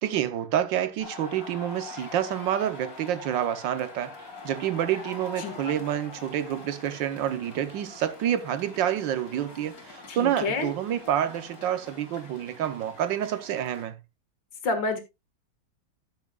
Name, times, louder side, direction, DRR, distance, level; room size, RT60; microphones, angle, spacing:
voice 1, 0.0-4.1 4.4-14.0, right 10 dB, 80° right, 1.5 m, -28 dB
sound 1, 1.0-13.9, left 3 dB, 50° left, 2.9 m, -44 dB
voice 2, 5.4-5.7 10.1-10.7 14.6-15.0, left 3 dB, 75° left, 2.4 m, -29 dB
14.5 x 7.3 x 2.3 m
omnidirectional pair, 2.0 m